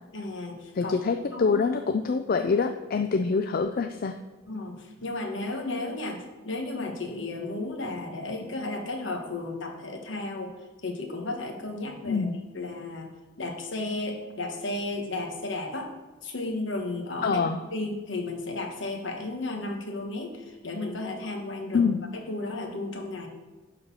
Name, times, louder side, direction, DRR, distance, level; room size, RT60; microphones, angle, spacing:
voice 1, 0.1-0.9 1.3-1.6 4.5-10.5 10.8-12.3 12.5-13.1 13.4-15.9 16.2-17.4 17.7-23.3, left 2 dB, 65° left, 3 dB, 1.4 m, -34 dB
voice 2, 0.8-4.1 12.0-12.4 17.2-17.6 21.7-22.0, left 5 dB, 45° left, 7 dB, 0.4 m, -25 dB
10.5 x 4.1 x 7.0 m, 1.2 s
head